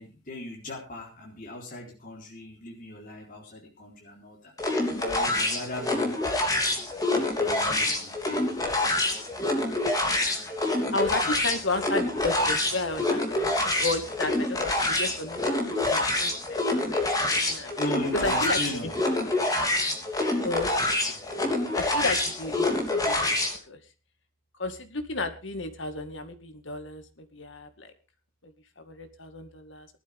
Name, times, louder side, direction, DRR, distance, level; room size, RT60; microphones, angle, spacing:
voice 1, 0.0-4.5 5.0-6.2 7.1-8.6 17.8-18.9, left 1 dB, 40° left, -2 dB, 4.3 m, -38 dB
sound 1, 4.6-23.6, left 2 dB, 20° left, 3.2 m, -27 dB
voice 2, 10.2-10.5 10.9-15.4 15.7-17.0 17.3-17.7 18.2-18.6 20.4-21.0 21.7-23.3 23.7-23.8 24.6-27.9 28.4-28.5 28.8-29.9, left 2 dB, 65° left, 8 dB, 2.1 m, -33 dB
19.0 x 12.5 x 3.7 m, 0.32 s
head